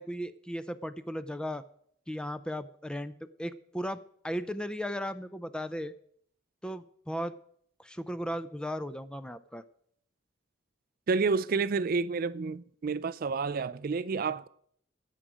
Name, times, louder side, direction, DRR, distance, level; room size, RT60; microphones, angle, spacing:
voice 1, 0.0-1.6 2.1-3.1 3.4-4.0 4.2-5.9 6.6-7.4 7.8-9.6, equal, 5° left, 0.5 m, -36 dB
voice 2, 11.1-14.5, right 4 dB, 50° right, 0.4 m, -29 dB
18.0 x 7.6 x 5.0 m
head